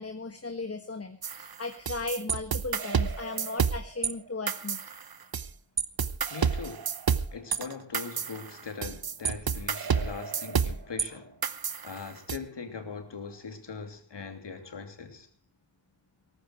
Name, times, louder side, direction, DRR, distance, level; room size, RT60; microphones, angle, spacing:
voice 1, 0.0-4.8, left 3 dB, 30° left, 1.4 m, -37 dB
sound 1, 1.2-4.1 4.5-5.5 5.8-11.1 11.4-12.4, right 6 dB, 55° right, 1.0 m, -30 dB
voice 2, 6.3-6.9 7.3-11.4 11.8-15.3, left 5 dB, 70° left, 3.1 m, -41 dB
18.0 x 14.5 x 4.7 m
wide cardioid pair, 115°, 44 cm